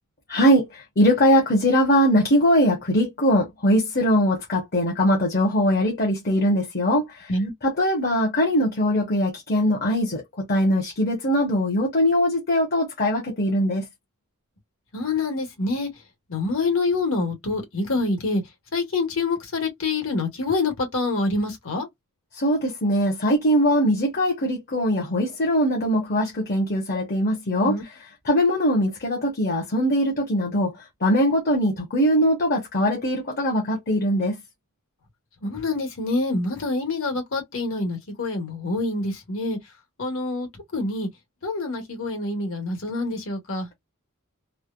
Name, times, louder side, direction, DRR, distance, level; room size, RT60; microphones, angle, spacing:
voice 1, 0.3-7.1 7.6-13.8 22.3-27.9 28.2-30.7 31.0-34.4, equal, 45° left, 0.9 m, -21 dB
voice 2, 14.9-15.9 16.3-18.4 18.7-21.9 27.6-27.8 28.3-28.4 35.4-39.6 40.0-41.1 41.4-43.7, left 3 dB, 65° left, 1.5 m, -26 dB
3.2 x 2.0 x 2.4 m
head